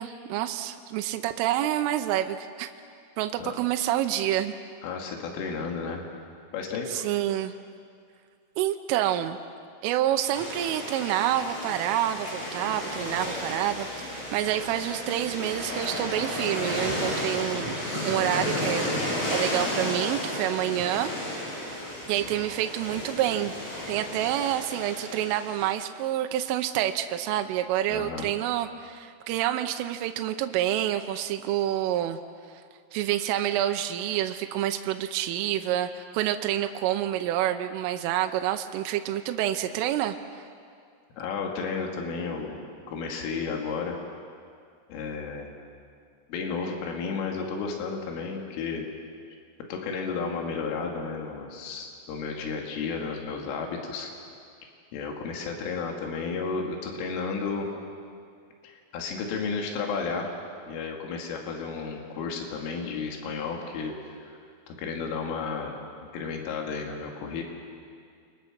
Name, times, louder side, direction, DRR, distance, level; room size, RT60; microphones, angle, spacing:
voice 1, 0.0-2.7 3.2-4.5 6.9-7.5 8.6-9.4 9.8-18.9 19.3-21.4 22.1-23.5 23.9-32.2 32.9-40.2, right 12 dB, 85° right, 6 dB, 3.3 m, -28 dB
voice 2, 4.8-6.1 6.5-7.0 27.9-28.3 41.2-44.0 44.9-45.5 46.3-48.8 49.7-54.1 54.9-57.7 58.6-60.3 60.7-63.9 64.3-64.4 64.7-65.7 66.1-67.4, left 5 dB, 75° left, 1 dB, 4.7 m, -32 dB
sound 1, 10.3-25.7, left 1 dB, 45° left, 9.2 m, -33 dB
29.5 x 24.0 x 6.1 m, 2.3 s
omnidirectional pair, 5.8 m